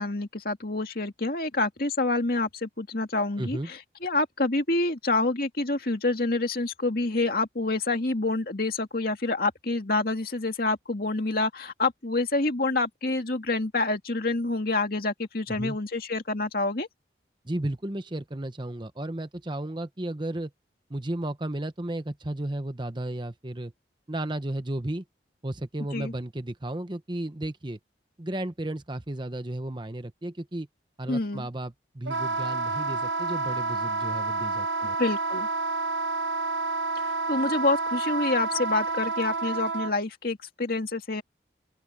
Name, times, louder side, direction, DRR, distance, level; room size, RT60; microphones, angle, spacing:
voice 1, 0.0-16.9 25.9-26.1 31.1-31.5 35.0-35.5 37.0-41.2, left 2 dB, 55° left, 2.3 m, -27 dB
voice 2, 3.4-3.7 15.5-15.8 17.4-20.5 20.9-23.7 24.1-25.0 25.4-27.8 28.2-30.7 31.0-35.0, right 1 dB, 25° right, 1.0 m, -33 dB
Wind instrument woodwind instrument, 32.0-39.9, right 3 dB, 85° right, 0.9 m, -29 dB
open air
head